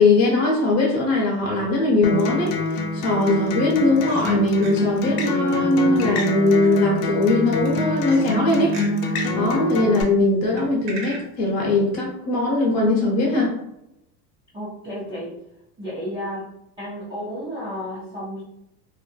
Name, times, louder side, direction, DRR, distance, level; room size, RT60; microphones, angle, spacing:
voice 1, 0.0-2.6 2.9-8.8 9.3-13.5, left 2 dB, 30° left, -2 dB, 0.9 m, -20 dB
Acoustic guitar, 2.0-10.0, left 2 dB, 70° left, 0.7 m, -25 dB
sound 1, 2.2-3.1 3.7-4.3 4.6-4.7 6.0-6.7 7.7-8.3 8.7-9.0 10.6-11.2, right 3 dB, 80° right, 1.2 m, -39 dB
voice 2, 14.5-15.4 15.8-16.4 16.8-18.4, equal, 10° right, -11 dB, 0.4 m, -32 dB
2.6 x 2.5 x 2.4 m, 0.84 s
supercardioid pair, 145°, 50 cm